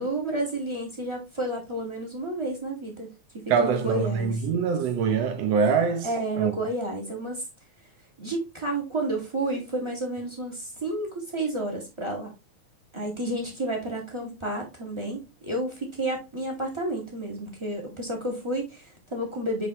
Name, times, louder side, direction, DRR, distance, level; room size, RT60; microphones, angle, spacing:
voice 1, 0.0-3.1 3.4-4.4 6.0-7.4 8.2-12.3 12.9-19.7, right 1 dB, 10° right, 1.6 m, -31 dB
voice 2, 3.5-6.1 6.4-6.5, right 6 dB, 70° right, 1.8 m, -24 dB
5.9 x 5.1 x 3.2 m
omnidirectional pair, 3.3 m